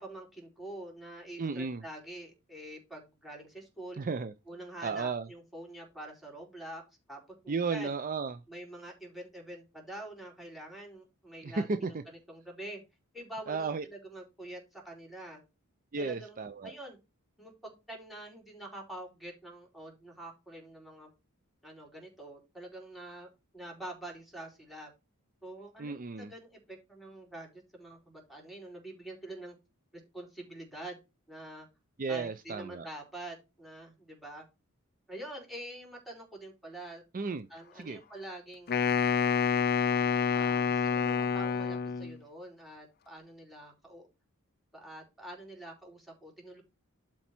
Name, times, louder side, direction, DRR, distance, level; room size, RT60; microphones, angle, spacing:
voice 1, 0.0-4.0 4.5-6.8 7.1-7.2 7.4-7.9 8.5-12.8 13.1-15.4 16.0-17.0 17.4-21.1 21.6-23.3 23.5-24.9 25.4-29.5 30.1-31.0 31.3-31.7 32.1-34.4 35.1-37.0 37.5-38.8 39.8-44.1 44.7-46.6, right 1 dB, ahead, 4.1 m, -46 dB
voice 2, 1.4-1.8 4.0-4.3 4.8-5.3 7.5-8.4 11.4-12.0 13.5-13.8 15.9-16.7 25.8-26.3 32.0-32.9 37.1-37.5 37.8-38.0, right 4 dB, 40° right, 0.5 m, -34 dB
Wind instrument woodwind instrument, 38.7-42.2, left 6 dB, 45° left, 0.5 m, -28 dB
11.5 x 4.5 x 4.3 m
head